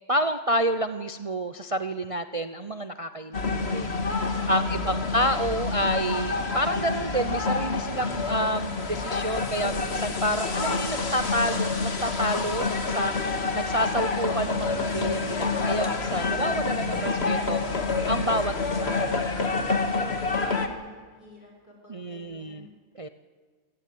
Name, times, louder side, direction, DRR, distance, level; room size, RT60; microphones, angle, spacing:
voice 1, 0.1-3.9 4.5-13.2 13.5-17.7 18.1-19.0 20.4-20.6 21.9-22.7 23.0-23.1, right 1 dB, 35° right, 10 dB, 0.5 m, -29 dB
sound 1, 3.3-20.7, left 3 dB, 45° left, 2.1 m, -28 dB
voice 2, 19.9-22.7, left 2 dB, 80° left, 1 dB, 6.4 m, -50 dB
27.5 x 16.0 x 9.5 m, 1.5 s
omnidirectional pair, 1.6 m